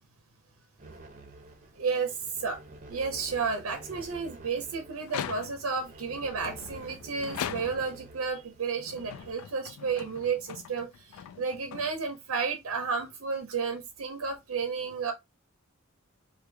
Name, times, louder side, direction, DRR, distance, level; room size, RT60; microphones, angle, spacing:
sound 1, 0.8-9.3, right 2 dB, 35° right, 0.6 m, -49 dB
voice 1, 1.8-2.6 2.9-15.1, right 5 dB, 80° right, 0.6 m, -32 dB
sound 2, 5.0-5.8 6.4-8.1 8.8-12.3, left 9 dB, 80° left, 0.3 m, -41 dB
3.2 x 2.2 x 3.3 m
head